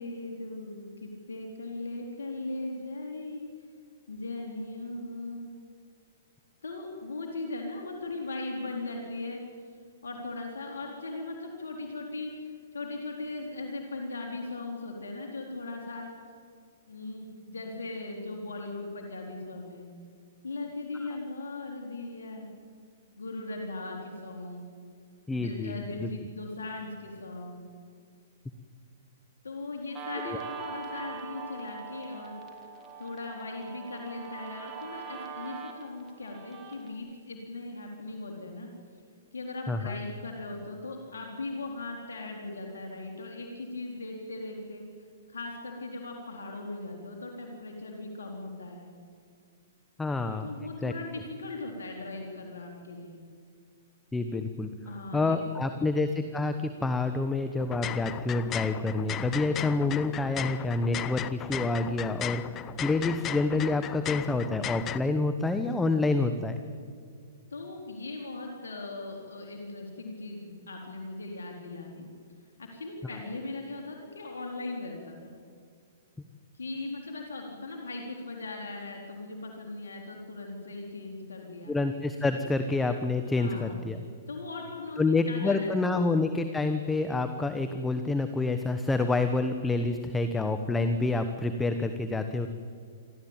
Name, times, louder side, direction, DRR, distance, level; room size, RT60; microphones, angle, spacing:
voice 1, 0.0-3.4 4.1-5.5 6.6-9.4 10.0-16.1 16.9-19.8 20.4-22.5 23.2-24.6 25.3-27.6 29.4-32.4 33.0-38.7 39.3-44.8 45.3-48.9 50.4-53.2 54.8-55.4 67.5-72.1 72.6-75.3 76.5-81.8 83.3-83.8 84.3-86.0, left 2 dB, 85° left, 1 dB, 3.8 m, -38 dB
voice 2, 25.3-26.1 30.3-30.4 39.7-40.0 50.0-50.5 50.8-50.9 54.1-54.7 55.1-66.6 81.7-84.0 85.0-92.5, left 3 dB, 10° left, 7 dB, 1.1 m, -28 dB
Guitar, 29.9-36.9, right 6 dB, 20° right, 3.1 m, -42 dB
sound 1, 57.6-65.0, left 11 dB, 25° left, 0.7 m, -36 dB
28.0 x 13.0 x 8.9 m, 2.2 s
hypercardioid pair, 130°, 0 cm